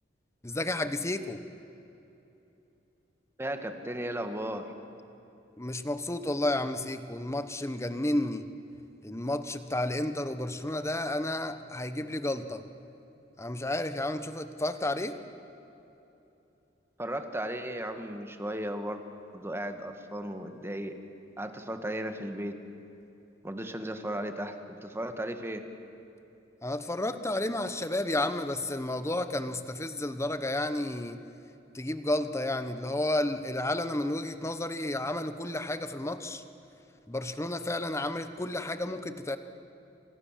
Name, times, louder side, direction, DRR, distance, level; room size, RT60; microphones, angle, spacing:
voice 1, 0.4-1.4 5.6-8.5 9.0-12.6 13.4-15.2 26.6-31.2 31.7-36.4 37.1-39.4, left 1 dB, 15° left, 10 dB, 1.2 m, -31 dB
voice 2, 3.4-4.7 17.0-19.0 19.3-21.0 21.4-22.6 23.4-25.6, right 1 dB, 15° right, 6 dB, 1.8 m, -35 dB
29.0 x 25.5 x 7.5 m, 2.9 s
head